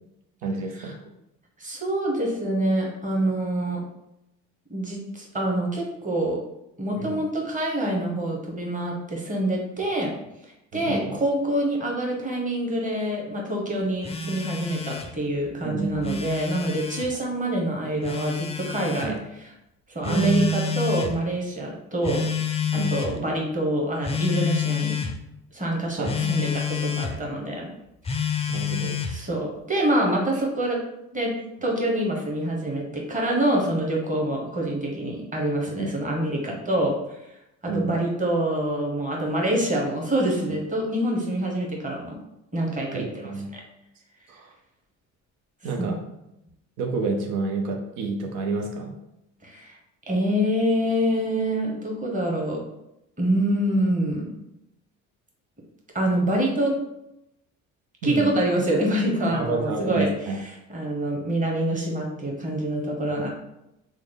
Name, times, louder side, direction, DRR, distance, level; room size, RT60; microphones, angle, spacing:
voice 1, 0.4-0.9 7.0-7.2 10.7-11.2 15.6-16.2 19.0-19.1 20.0-20.5 22.7-22.9 26.0-26.5 28.5-29.1 35.8-35.9 37.7-38.0 42.9-43.5 44.3-44.5 45.6-46.0 46.8-48.9 58.0-58.3 59.3-60.4, right 3 dB, 80° right, 1 dB, 0.6 m, -29 dB
voice 2, 1.6-3.8 4.7-6.4 6.8-10.1 10.7-19.1 19.9-22.3 22.7-25.0 25.5-27.7 28.1-28.4 29.1-30.8 31.1-31.3 31.6-36.9 37.6-42.2 42.5-43.6 45.8-46.0 49.4-49.8 50.1-52.6 53.2-54.2 55.9-56.7 58.0-60.1 60.7-63.3, right 1 dB, 20° right, -1 dB, 1.1 m, -26 dB
Telephone, 14.0-15.1 15.9-17.1 18.0-19.1 20.0-21.1 22.0-23.2 24.0-25.1 26.0-27.1 28.0-29.2, left 6 dB, 15° left, 0.4 m, -28 dB
3.1 x 2.0 x 3.9 m, 0.86 s
hypercardioid pair, 60°, 42 cm